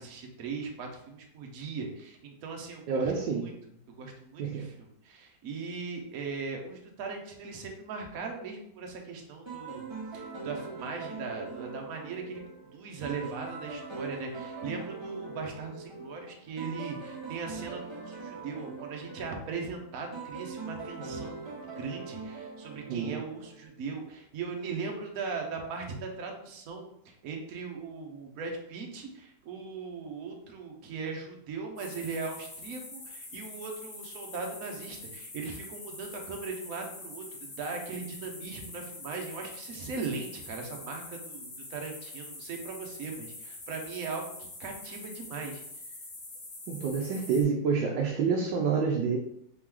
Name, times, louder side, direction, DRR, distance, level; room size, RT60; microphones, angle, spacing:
voice 1, 0.0-3.5 3.9-9.8 10.1-45.6, right 4 dB, 60° right, 2 dB, 1.2 m, -39 dB
voice 2, 2.9-3.5 4.4-4.7 22.9-23.2 46.7-49.2, right 5 dB, 85° right, 0 dB, 1.3 m, -28 dB
sound 1, 9.5-23.7, right 4 dB, 20° right, 0.8 m, -42 dB
sound 2, 31.8-47.4, left 2 dB, 80° left, 1.9 m, -45 dB
4.2 x 3.0 x 3.7 m, 0.73 s
omnidirectional pair, 1.8 m